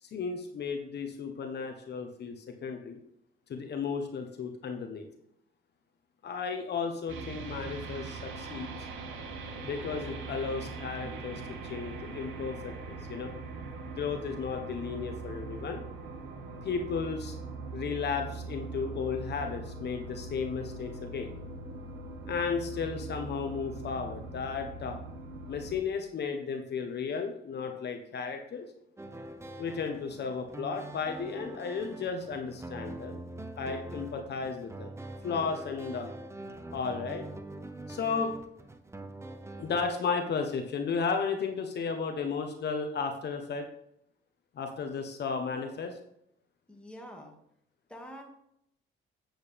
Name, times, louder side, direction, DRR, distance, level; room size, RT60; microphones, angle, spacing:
voice 1, 0.0-3.0 3.5-5.1 6.2-8.9 9.6-11.4 11.7-13.3 13.8-15.8 16.6-17.3 17.7-21.3 22.3-25.0 25.5-28.7 29.6-33.2 33.6-34.9 35.2-36.1 36.7-37.2 37.9-38.3 39.6-43.7 44.6-46.0, left 5 dB, 60° left, 5 dB, 1.2 m, -34 dB
sound 1, 7.1-25.8, right 3 dB, 80° right, 1.7 m, -41 dB
sound 2, 29.0-39.9, right 2 dB, 15° right, 1.0 m, -44 dB
voice 2, 46.7-47.4 47.9-48.2, equal, 5° left, 0 dB, 2.3 m, -46 dB
8.9 x 7.9 x 3.6 m, 0.74 s
cardioid pair, 90°, 20 cm